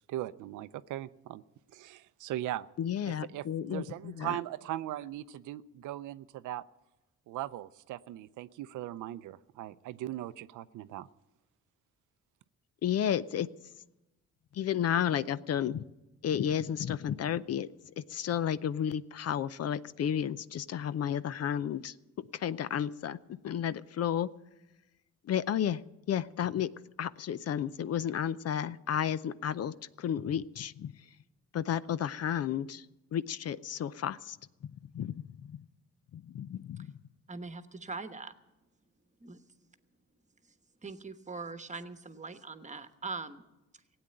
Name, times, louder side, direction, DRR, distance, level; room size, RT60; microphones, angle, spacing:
voice 1, 0.1-1.4 1.7-2.7 3.0-6.6 7.3-11.1, right 13 dB, 80° right, 14 dB, 0.6 m, -39 dB
voice 2, 2.8-4.4 12.8-13.5 14.5-15.8 16.2-17.7 18.0-21.9 22.3-24.3 25.3-25.8 26.1-26.7 27.0-30.9 31.5-32.9 33.1-34.4 34.9-35.6 36.1-36.9, left 9 dB, 55° left, 16 dB, 0.6 m, -32 dB
voice 3, 37.3-38.3 39.2-39.4 40.8-43.4, right 4 dB, 25° right, 10 dB, 1.2 m, -41 dB
16.5 x 8.8 x 8.9 m, 0.99 s
cardioid pair, 90°, 30 cm